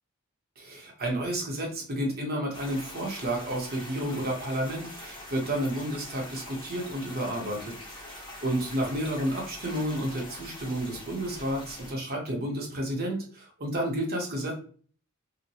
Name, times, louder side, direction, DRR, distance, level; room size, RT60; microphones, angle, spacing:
voice 1, 0.6-14.5, right 1 dB, 45° right, -1 dB, 0.9 m, -31 dB
sound 1, 2.5-11.9, left 1 dB, 20° left, 0.9 m, -44 dB
2.9 x 2.1 x 2.7 m, 0.42 s
head